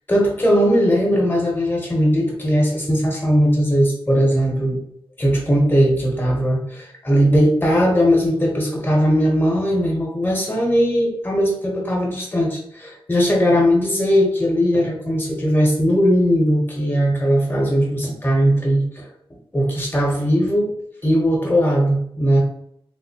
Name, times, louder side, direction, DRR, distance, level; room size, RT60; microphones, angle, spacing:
voice 1, 0.1-4.8 5.2-19.1 19.5-20.7 21.0-22.4, equal, 20° left, -1 dB, 0.9 m, -18 dB
3.4 x 2.7 x 2.8 m, 0.69 s
wide cardioid pair, 130°, 10 cm